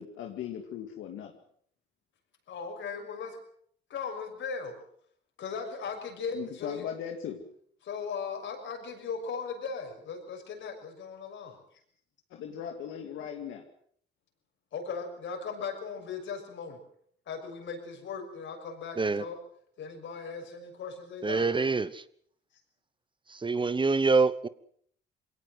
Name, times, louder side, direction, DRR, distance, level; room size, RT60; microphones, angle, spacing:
voice 1, 0.0-1.3 6.3-7.4 12.3-13.6, left 9 dB, 90° left, 4 dB, 2.3 m, -38 dB
voice 2, 2.5-3.4 3.9-4.7 5.4-6.9 7.8-11.6 14.7-16.8 17.3-19.4 19.8-21.5, left 5 dB, 70° left, 4 dB, 6.4 m, -38 dB
voice 3, 21.2-22.0 23.3-24.5, right 4 dB, 25° right, 17 dB, 1.0 m, -26 dB
22.0 x 17.5 x 7.9 m, 0.63 s
cardioid pair, 90°, 20 cm